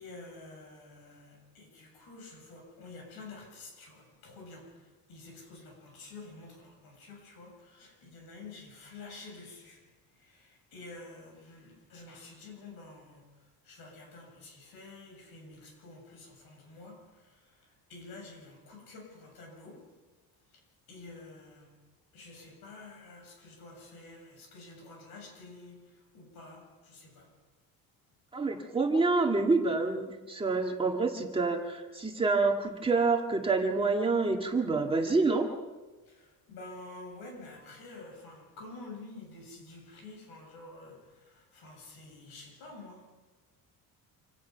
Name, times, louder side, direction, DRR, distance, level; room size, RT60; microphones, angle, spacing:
voice 1, 0.0-20.0 20.5-21.8 22.1-27.4 36.0-43.2, left 3 dB, 80° left, 7.8 m, -49 dB
voice 2, 28.3-35.5, right 3 dB, 15° right, 1.9 m, -27 dB
27.0 x 18.0 x 5.7 m
cardioid pair, 165°, 37 cm